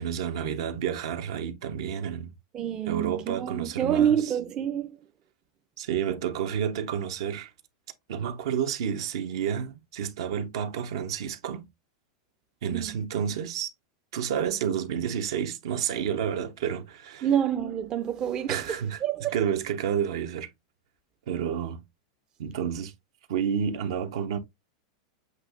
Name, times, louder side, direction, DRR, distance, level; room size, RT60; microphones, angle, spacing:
voice 1, 0.0-2.3 2.9-4.3 5.8-7.5 8.1-11.7 12.6-13.7 14.1-17.3 18.5-19.0 19.3-20.5 21.3-21.8 22.4-22.9 23.3-24.4, right 8 dB, 75° right, 0.9 m, -30 dB
voice 2, 2.5-5.0 12.7-13.0 17.2-19.4, right 9 dB, 30° right, 0.5 m, -27 dB
7.8 x 2.8 x 2.5 m
supercardioid pair, 140°, 3 cm